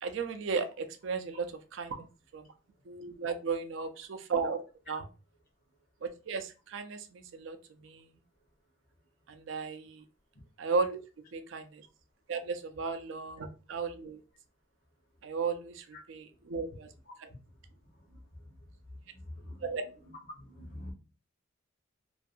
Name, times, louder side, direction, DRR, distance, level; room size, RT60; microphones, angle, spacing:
voice 1, 0.0-1.5 1.7-2.1 2.3-2.4 2.9-5.0 6.0-8.1 9.3-10.0 10.6-11.0 11.3-11.9 12.3-14.2 15.2-16.9 19.6-19.8, right 4 dB, 65° right, 8 dB, 0.4 m, -35 dB
voice 2, 19.1-19.7 20.0-20.9, left 1 dB, 45° left, 0 dB, 0.8 m, -46 dB
2.5 x 2.3 x 2.5 m, 0.33 s
head